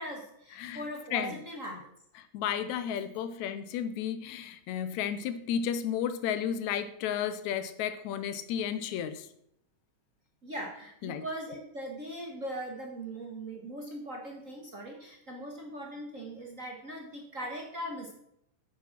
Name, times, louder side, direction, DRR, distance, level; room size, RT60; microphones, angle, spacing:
voice 1, 0.0-1.9 10.4-18.1, right 1 dB, 35° right, 0 dB, 1.4 m, -40 dB
voice 2, 0.5-0.8 1.1-1.4 2.2-9.3 11.0-11.2, left 9 dB, 80° left, 12 dB, 2.0 m, -33 dB
8.7 x 8.6 x 6.0 m, 0.73 s
omnidirectional pair, 3.4 m